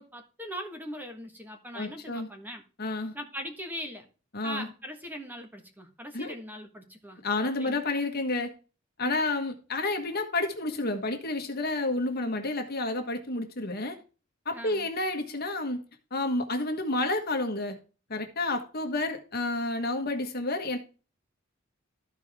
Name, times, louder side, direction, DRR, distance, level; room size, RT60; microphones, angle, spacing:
voice 1, 0.0-2.6 3.1-4.0 4.4-7.2 7.6-7.8 14.5-14.9, equal, 10° right, 1.4 m, -40 dB
voice 2, 1.7-2.3 2.8-3.1 4.3-4.7 6.1-6.3 7.2-8.5 9.0-14.0 14.4-15.8 16.1-17.8 18.1-20.8, left 2 dB, 50° left, 1.4 m, -30 dB
14.0 x 4.7 x 3.6 m
head